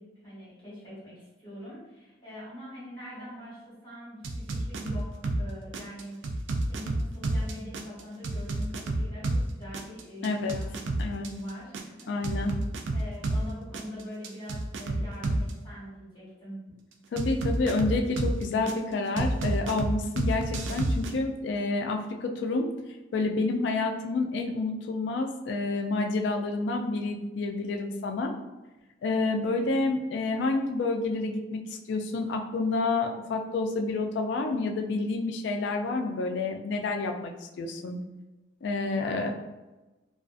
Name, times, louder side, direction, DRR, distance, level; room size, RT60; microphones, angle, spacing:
voice 1, 0.0-6.4 6.7-12.5 12.9-16.6 38.9-39.3, equal, 25° left, -9 dB, 1.0 m, -43 dB
sound 1, 4.2-5.4 5.7-9.4 9.7-13.4 13.7-15.5 17.2-18.7 19.2-21.1, right 2 dB, 75° right, 0.3 m, -29 dB
voice 2, 10.2-10.5 11.0-11.3 12.1-12.5 17.1-22.7 23.1-28.3 29.0-31.6 31.9-38.0 38.6-39.3, left 3 dB, 65° left, 3 dB, 0.3 m, -29 dB
2.4 x 2.4 x 2.4 m, 1.1 s
head